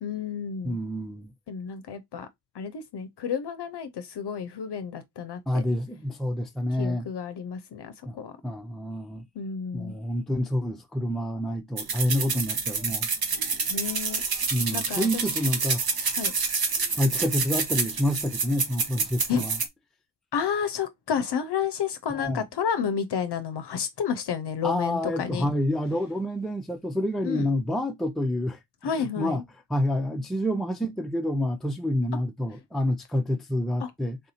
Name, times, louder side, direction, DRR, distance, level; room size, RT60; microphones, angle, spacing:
voice 1, 0.0-0.8 1.5-2.3 2.5-5.6 6.8-8.3 9.4-9.9 13.7-14.2 14.5-15.2 16.2-16.3 19.3-19.4 20.3-25.5 27.2-27.5 28.8-29.4 33.8-33.9, left 7 dB, 65° left, 0.7 m, -31 dB
voice 2, 0.6-1.3 5.5-7.1 8.1-8.2 8.4-9.2 9.7-13.1 14.5-15.8 17.0-19.6 22.1-22.4 24.6-29.4 29.7-34.2, left 1 dB, ahead, 0.6 m, -28 dB
sound 1, 11.8-19.7, right 5 dB, 55° right, 1.1 m, -28 dB
3.6 x 2.7 x 4.1 m
cardioid pair, 60°, 43 cm